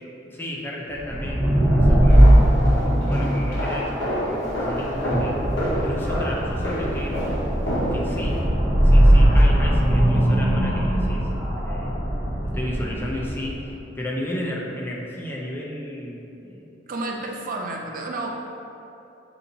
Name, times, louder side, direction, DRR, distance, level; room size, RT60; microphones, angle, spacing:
voice 1, 0.2-2.4 3.1-5.5 5.8-7.2 7.9-8.4 8.8-11.3 11.5-12.0 12.4-16.7, left 1 dB, 10° left, -3 dB, 0.4 m, -33 dB
sound 1, 1.0-13.6, equal, 15° right, 1.2 m, -19 dB
sound 2, 2.1-8.4, equal, 85° left, 1.2 m, -29 dB
voice 2, 16.9-18.3, right 2 dB, 50° right, 0 dB, 0.4 m, -30 dB
6.7 x 2.7 x 2.7 m, 2.9 s
head